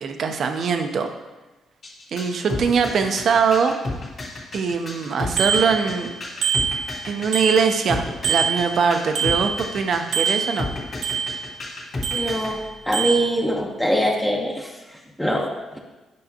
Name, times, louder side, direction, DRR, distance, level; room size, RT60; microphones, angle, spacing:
voice 1, 0.0-1.1 2.1-3.7 4.5-6.1 7.0-10.7, right 5 dB, 60° right, 6 dB, 0.7 m, -22 dB
sound 1, 1.8-12.5, left 2 dB, 50° left, 1.7 m, -32 dB
Bicycle bell, 5.4-6.1 6.4-7.9 8.2-9.8 10.1-11.6 12.0-12.6 12.9-13.3, right 6 dB, 85° right, 1.5 m, -25 dB
voice 2, 12.1-12.6 12.9-14.7 15.2-15.8, equal, 5° left, 0 dB, 0.9 m, -23 dB
9.2 x 5.7 x 2.9 m, 1.1 s
cardioid pair, 90°, 0 cm